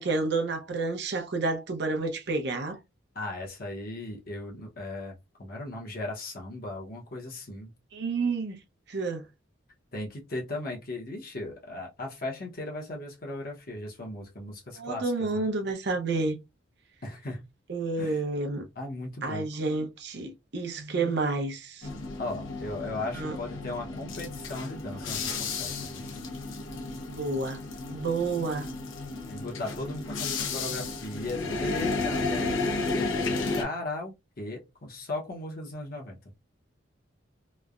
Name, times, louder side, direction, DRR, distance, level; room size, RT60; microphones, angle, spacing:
voice 1, 0.0-2.8 7.9-8.6 8.9-9.2 14.8-16.4 17.7-18.6 19.2-21.9 23.1-23.4 27.1-27.6 27.9-28.7, right 3 dB, 60° right, 0.7 m, -30 dB
voice 2, 3.1-5.1 5.4-7.7 9.9-15.4 17.0-17.4 18.0-18.2 18.8-19.5 22.2-26.1 29.3-36.2, left 2 dB, 50° left, 0.8 m, -37 dB
sound 1, 21.8-33.6, left 3 dB, 85° left, 0.7 m, -33 dB
3.1 x 2.1 x 2.4 m
head